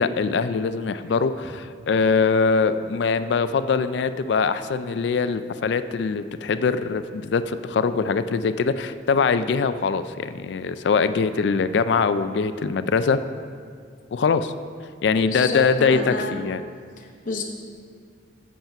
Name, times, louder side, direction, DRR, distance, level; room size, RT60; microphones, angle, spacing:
voice 1, 0.0-13.2 14.1-14.5 15.0-16.6, left 5 dB, 65° left, 12 dB, 0.3 m, -22 dB
voice 2, 15.2-16.4 17.0-17.4, left 3 dB, 45° left, 0 dB, 0.8 m, -30 dB
7.9 x 7.4 x 5.7 m, 2.1 s
head